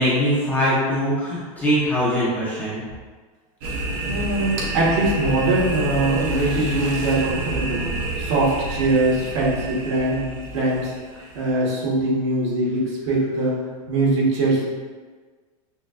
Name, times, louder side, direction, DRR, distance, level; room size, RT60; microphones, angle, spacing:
voice 1, 0.0-2.8, equal, 10° left, -10 dB, 0.6 m, -22 dB
sound 1, 3.6-11.5, right 1 dB, 35° right, 0.6 m, -28 dB
voice 2, 4.0-7.8 8.2-10.9 11.3-13.6 13.9-14.6, right 2 dB, 55° right, -4 dB, 1.2 m, -22 dB
6.2 x 2.2 x 2.4 m, 1.4 s
supercardioid pair, 175°, 19 cm